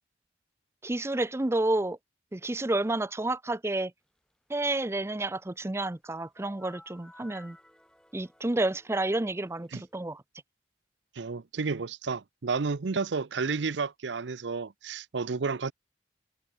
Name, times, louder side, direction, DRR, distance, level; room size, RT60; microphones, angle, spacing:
voice 1, 0.8-2.0 2.3-3.9 4.5-7.6 8.1-10.2, right 2 dB, 15° right, 0.5 m, -30 dB
sound 1, 6.3-9.9, left 1 dB, 5° left, 2.0 m, -55 dB
voice 2, 11.2-15.7, right 4 dB, 85° right, 0.7 m, -31 dB
head